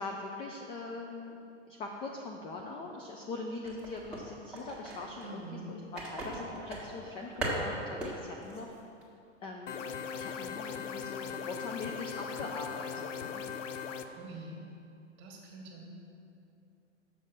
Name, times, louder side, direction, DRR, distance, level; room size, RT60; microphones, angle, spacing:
voice 1, 0.0-1.4 1.7-8.7 9.4-13.4, left 3 dB, 15° left, 1 dB, 0.3 m, -42 dB
sound 1, 3.6-5.3 6.0-8.2 8.4-8.6 9.0-9.1, right 1 dB, 5° right, 1.9 m, -38 dB
voice 2, 5.2-5.8 14.2-14.6 15.2-15.8, right 2 dB, 30° right, 0 dB, 1.9 m, -45 dB
sound 2, 9.7-14.1, left 7 dB, 75° left, 0.7 m, -39 dB
7.2 x 6.7 x 6.2 m, 2.6 s
hypercardioid pair, 115°, 37 cm